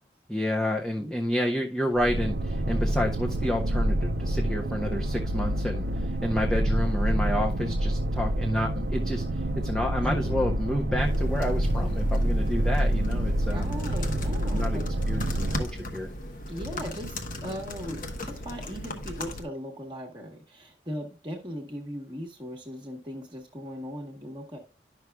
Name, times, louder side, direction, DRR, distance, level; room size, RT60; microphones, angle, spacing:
voice 1, 0.3-13.7 14.5-14.8 15.1-16.1, left 1 dB, 5° left, -1 dB, 0.6 m, -30 dB
sound 1, 2.0-15.6, right 1 dB, 60° right, 0.5 m, -27 dB
sound 2, 11.0-19.4, left 1 dB, 45° left, 1.0 m, -38 dB
voice 2, 13.5-14.8 16.5-24.6, equal, 25° right, -1 dB, 1.1 m, -38 dB
11.0 x 6.0 x 2.2 m, 0.30 s
head